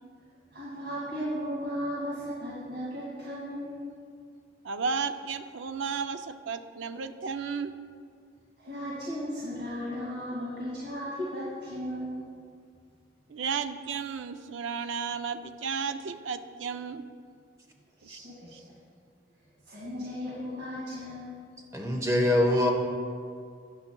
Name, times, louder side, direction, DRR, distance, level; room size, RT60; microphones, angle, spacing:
voice 1, 0.5-3.8 8.6-12.3 18.0-18.7 19.7-21.4, equal, 65° right, -8 dB, 2.0 m, -36 dB
voice 2, 4.6-7.7 13.3-17.0 18.1-18.2 18.5-18.6, right 5 dB, 90° right, 10 dB, 0.5 m, -33 dB
voice 3, 21.7-22.7, left 1 dB, 15° right, 1 dB, 1.0 m, -23 dB
13.0 x 9.7 x 2.3 m, 2.2 s
head